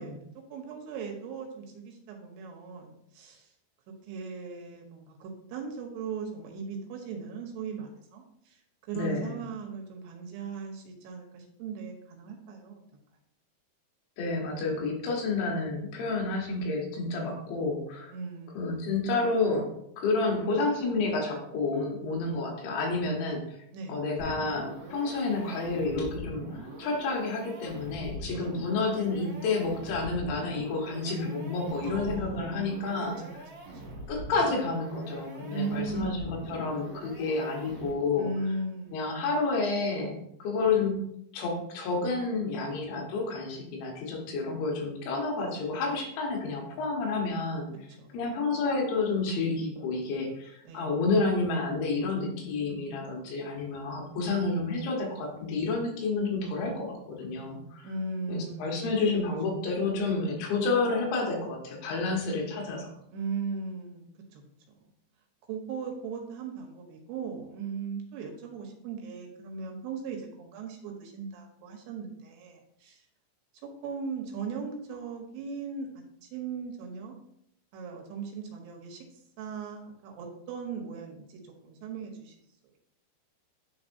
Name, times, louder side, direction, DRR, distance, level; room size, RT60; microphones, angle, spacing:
voice 1, 0.0-3.5 4.0-8.6 8.9-12.8 18.1-18.9 23.7-24.0 28.3-28.5 31.8-32.8 33.2-34.0 35.5-36.1 38.2-39.2 48.0-48.2 50.6-50.9 57.8-58.9 59.5-59.6 63.1-64.4 65.5-73.0 73.6-75.9 76.2-77.1 77.7-79.0 79.4-82.3, right 4 dB, 75° right, 2 dB, 2.7 m, -38 dB
voice 2, 8.9-9.4 14.2-18.1 18.6-19.7 20.0-23.4 23.9-33.2 34.1-38.3 38.9-41.0 41.3-47.7 48.1-57.9 58.3-62.9, left 3 dB, 80° left, 0 dB, 3.6 m, -30 dB
sound 1, 24.2-38.2, right 1 dB, 60° right, 2.0 m, -43 dB
10.5 x 3.7 x 2.7 m, 0.74 s
omnidirectional pair, 5.2 m